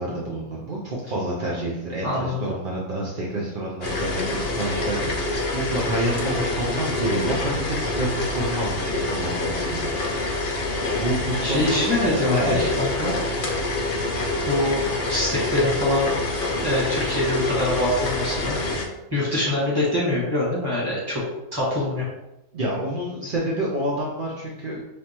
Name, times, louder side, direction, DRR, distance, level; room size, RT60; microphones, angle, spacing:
voice 1, 0.0-10.1 10.9-11.9 12.2-12.7 22.5-24.8, right 1 dB, 55° right, -4 dB, 0.5 m, -28 dB
voice 2, 2.0-2.5 11.4-13.1 14.4-16.2 16.6-18.5 19.1-21.2 21.5-22.0, left 1 dB, 15° right, -7 dB, 1.5 m, -24 dB
sound 1, 3.8-18.8, left 2 dB, 65° left, 0.5 m, -26 dB
5.1 x 2.8 x 2.9 m, 0.96 s
omnidirectional pair, 1.7 m